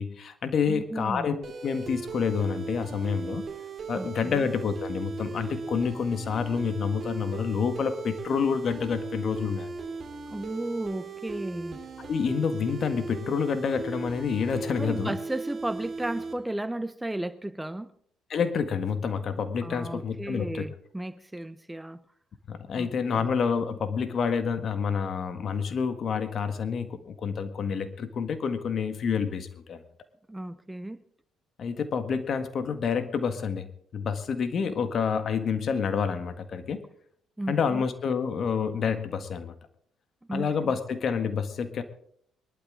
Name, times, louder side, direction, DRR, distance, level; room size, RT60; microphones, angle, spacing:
voice 1, 0.0-3.5 3.9-9.7 12.0-15.1 18.3-20.7 22.5-29.8 31.6-33.7 33.9-36.8 37.5-39.5 40.3-41.8, left 6 dB, 55° left, 10 dB, 1.7 m, -28 dB
voice 2, 0.7-1.4 3.9-4.5 10.3-11.8 14.8-17.9 19.6-22.0 22.7-23.3 30.3-31.0 37.4-37.8 40.3-40.8, right 1 dB, 10° right, 15 dB, 0.8 m, -34 dB
sound 1, 1.4-16.3, right 4 dB, 50° right, 3.3 m, -38 dB
22.5 x 12.0 x 3.8 m, 0.63 s
hypercardioid pair, 55°, 0 cm